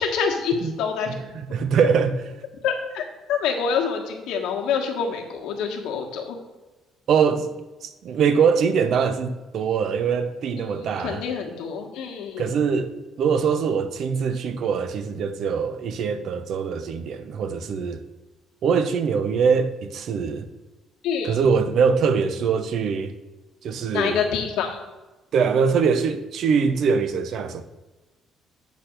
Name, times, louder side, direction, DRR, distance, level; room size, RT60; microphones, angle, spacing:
voice 1, 0.0-1.1 2.6-3.0 3.3-6.4 10.6-12.4 21.0-21.4 23.9-24.7, left 6 dB, 90° left, 1.5 m, -26 dB
voice 2, 1.1-2.2 7.1-7.5 7.8-11.2 12.4-12.9 13.2-18.0 18.6-20.5 21.2-23.1 23.6-24.2 25.3-27.6, right 6 dB, 55° right, 0.6 m, -23 dB
8.2 x 4.3 x 6.5 m
cardioid pair, 155°, 0 cm